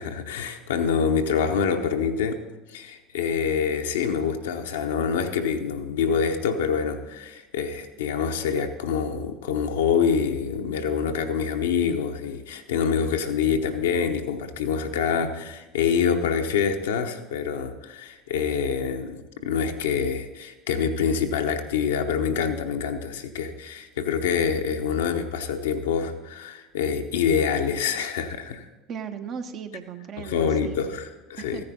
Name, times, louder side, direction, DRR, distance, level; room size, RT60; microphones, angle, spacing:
voice 1, 0.0-2.4 2.7-28.7 30.2-31.6, left 6 dB, 70° left, 5 dB, 0.9 m, -26 dB
voice 2, 28.9-30.8 31.4-31.6, right 7 dB, 45° right, 7 dB, 0.9 m, -37 dB
14.5 x 9.8 x 4.1 m, 1.1 s
figure-of-eight pair, 65°, 0 cm